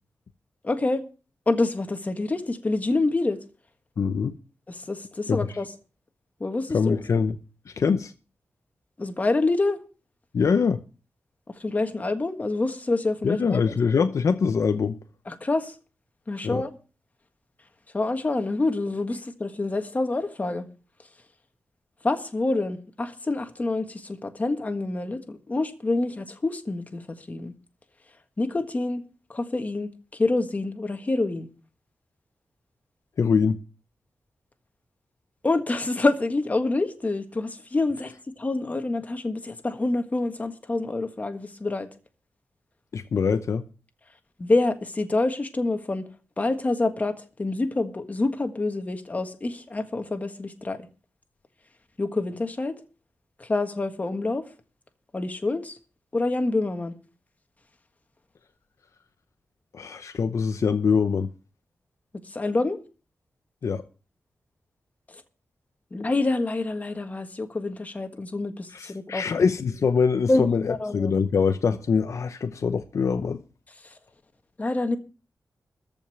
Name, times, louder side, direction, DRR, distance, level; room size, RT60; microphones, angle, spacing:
voice 1, 0.6-1.0 1.5-3.4 4.7-5.7 6.4-7.0 9.0-9.8 11.5-13.8 15.3-15.8 16.3-16.7 17.9-20.7 22.0-27.5 28.4-29.0 29.3-31.5 35.4-41.9 44.4-46.1 46.4-50.9 52.0-52.7 53.4-54.5 55.1-55.8 56.1-57.0 62.2-62.8 65.1-65.2 65.9-69.2 70.3-71.1 73.8-74.0 74.6-75.0, left 2 dB, 25° left, 1.6 m, -27 dB
voice 2, 4.0-4.4 5.3-5.4 6.7-7.4 7.7-8.1 10.3-10.8 13.2-15.0 16.4-16.6 33.2-33.6 42.9-43.7 59.7-61.3 63.6-63.8 68.7-73.4, left 5 dB, 60° left, 0.8 m, -23 dB
14.0 x 5.4 x 9.2 m
wide cardioid pair, 160°, 6 cm